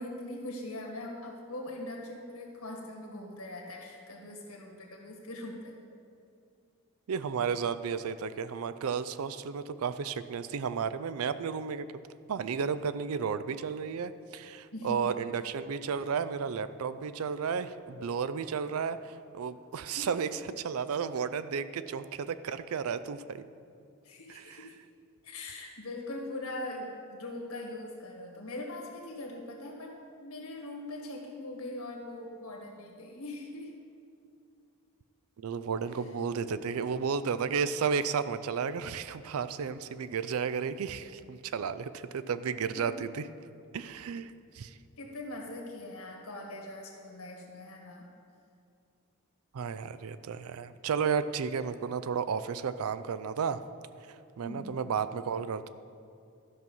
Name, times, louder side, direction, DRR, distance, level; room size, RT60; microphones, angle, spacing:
voice 1, 0.0-5.7 14.7-15.0 19.8-20.1 24.0-24.8 25.2-33.7 42.7-42.9 45.0-48.1 54.4-54.8, left 1 dB, 75° left, -1 dB, 1.8 m, -41 dB
voice 2, 7.1-11.9 12.3-23.5 24.3-24.7 35.4-43.3 43.7-44.8 49.5-53.6 54.4-55.7, right 6 dB, 75° right, 14 dB, 0.4 m, -33 dB
12.5 x 6.0 x 5.5 m, 2.4 s
head